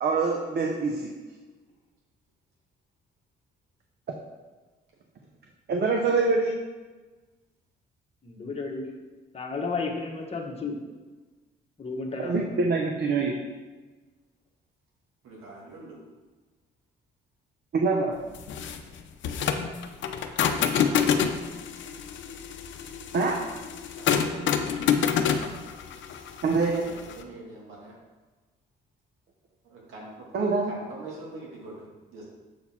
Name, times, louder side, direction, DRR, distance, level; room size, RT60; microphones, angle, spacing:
voice 1, 0.0-1.1 4.1-4.2 5.7-6.6 12.2-13.3 17.7-18.2 23.1-23.4 26.4-26.8 30.3-30.7, right 4 dB, 55° right, 2 dB, 0.8 m, -25 dB
voice 2, 8.2-10.8 11.8-12.5, left 3 dB, 30° left, 0 dB, 1.2 m, -33 dB
voice 3, 15.2-16.0 20.5-21.1 24.0-24.6 26.7-28.0 29.6-30.3 30.7-32.3, right 2 dB, 85° right, -4 dB, 1.8 m, -44 dB
sound 1, 18.3-27.2, left 7 dB, 70° left, 0.6 m, -27 dB
7.4 x 4.1 x 4.3 m, 1.3 s
cardioid pair, 90°, 20 cm